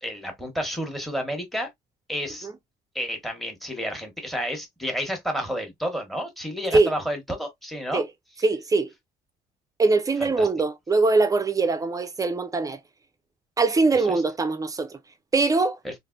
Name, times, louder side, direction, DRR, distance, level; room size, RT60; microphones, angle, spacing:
voice 1, 0.0-1.7 2.1-2.5 2.9-8.0 10.2-10.5 14.0-14.1 15.8-15.9, equal, ahead, 1.1 m, -30 dB
voice 2, 8.4-8.9 9.8-12.8 13.6-15.0 15.3-15.8, right 3 dB, 20° right, 0.5 m, -22 dB
3.3 x 2.5 x 2.4 m
cardioid pair, 110°, 17 cm